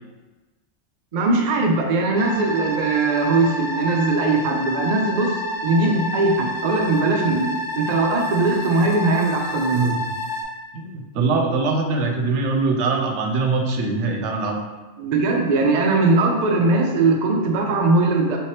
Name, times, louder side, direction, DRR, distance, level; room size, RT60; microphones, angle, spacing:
voice 1, 1.1-7.5 7.8-10.0 15.0-18.4, right 3 dB, 55° right, 1 dB, 0.5 m, -20 dB
sound 1, 2.2-10.4, left 1 dB, 55° left, 0.6 m, -29 dB
voice 2, 10.7-14.6, right 3 dB, 85° right, 3 dB, 0.9 m, -22 dB
3.4 x 2.9 x 3.2 m, 1.2 s
omnidirectional pair, 1.2 m